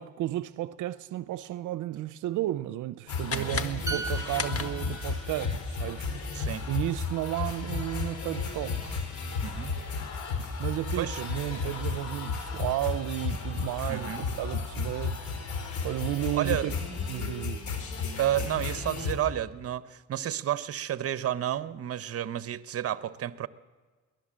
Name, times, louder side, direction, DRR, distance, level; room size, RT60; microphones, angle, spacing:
voice 1, 0.0-6.1 6.7-9.0 10.6-15.2 15.8-16.7 17.1-17.6, right 14 dB, 80° right, 0.6 m, -33 dB
sound 1, 3.1-19.1, left 4 dB, 70° left, 4.0 m, -33 dB
sound 2, 3.2-5.2, left 6 dB, 50° left, 1.5 m, -36 dB
voice 2, 3.3-3.7 6.3-6.6 9.4-9.7 11.0-11.2 13.9-14.3 16.3-16.7 18.2-23.5, right 11 dB, 50° right, 0.8 m, -31 dB
sound 3, 3.9-7.5 7.8-8.0, right 4 dB, 10° right, 2.3 m, -41 dB
22.5 x 18.0 x 7.5 m
cardioid pair, 90°, 30 cm